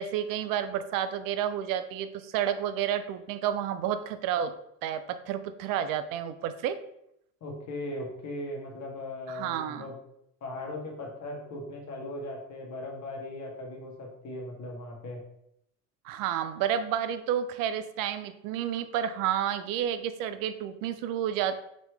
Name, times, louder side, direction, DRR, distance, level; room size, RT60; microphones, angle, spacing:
voice 1, 0.0-4.5 4.8-6.8 9.3-9.9 16.0-21.6, right 9 dB, 55° right, 11 dB, 0.6 m, -30 dB
voice 2, 7.4-9.9 10.4-15.2, left 1 dB, 45° left, 0 dB, 1.5 m, -38 dB
5.3 x 3.0 x 3.2 m, 0.78 s
hypercardioid pair, 80°, 40 cm